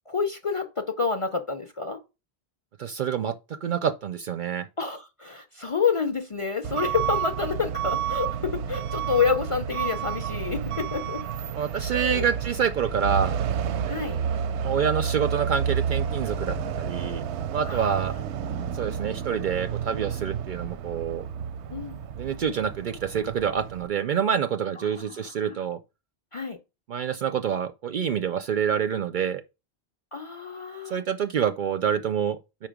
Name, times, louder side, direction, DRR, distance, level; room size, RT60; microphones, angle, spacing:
voice 1, 0.1-2.0 4.8-11.2 11.9-12.2 13.9-14.2 17.7-18.2 21.7-22.0 24.8-25.6 26.3-26.6 30.1-31.0, left 5 dB, 40° left, 0.5 m, -29 dB
voice 2, 2.8-3.3 3.6-4.7 11.5-13.4 14.6-17.2 17.5-18.1 18.7-21.2 22.2-25.8 26.9-29.4 30.9-32.7, right 7 dB, 60° right, 0.6 m, -27 dB
Truck / Alarm, 6.6-23.9, right 7 dB, 85° right, 0.9 m, -30 dB
5.3 x 4.5 x 5.0 m
omnidirectional pair, 1.1 m